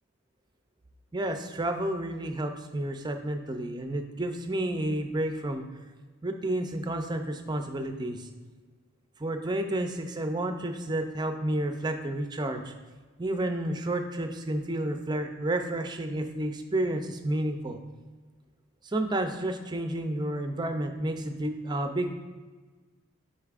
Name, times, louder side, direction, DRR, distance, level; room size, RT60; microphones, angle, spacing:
voice 1, 1.1-5.6 6.2-8.3 9.2-12.7 13.2-17.8 18.8-22.1, right 1 dB, 20° right, 6 dB, 0.4 m, -31 dB
8.0 x 5.6 x 2.4 m, 1.4 s
head